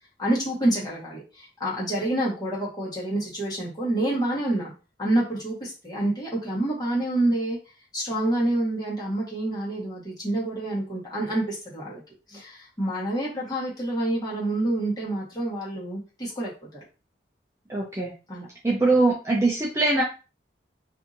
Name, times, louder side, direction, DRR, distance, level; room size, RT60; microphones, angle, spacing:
voice 1, 0.2-4.7 5.0-7.6 7.9-12.0 12.3-16.8 18.3-18.5, right 1 dB, 20° left, -6 dB, 1.2 m, -27 dB
voice 2, 17.7-18.1 18.6-20.0, right 2 dB, 15° right, -3 dB, 0.5 m, -22 dB
2.7 x 2.6 x 2.5 m, 0.32 s
head